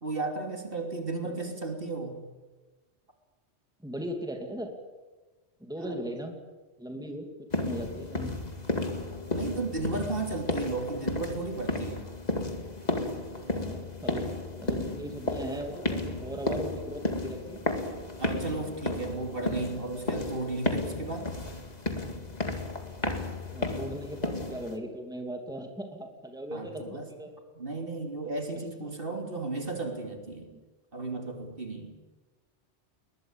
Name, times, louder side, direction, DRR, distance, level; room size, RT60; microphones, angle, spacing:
voice 1, 0.0-2.2 5.8-6.1 9.3-12.0 18.2-21.3 26.5-27.1 27.6-30.5 30.9-32.0, right 3 dB, 55° right, 3 dB, 3.3 m, -34 dB
voice 2, 3.8-4.7 5.6-6.3 6.8-7.3 7.6-8.4 13.5-14.3 14.6-17.6 23.5-27.3 28.8-28.9 30.5-30.6, equal, 5° right, 3 dB, 2.7 m, -38 dB
sound 1, 7.5-24.8, left 2 dB, 40° left, 2.3 m, -33 dB
21.0 x 20.5 x 8.9 m, 1.2 s
omnidirectional pair, 1.1 m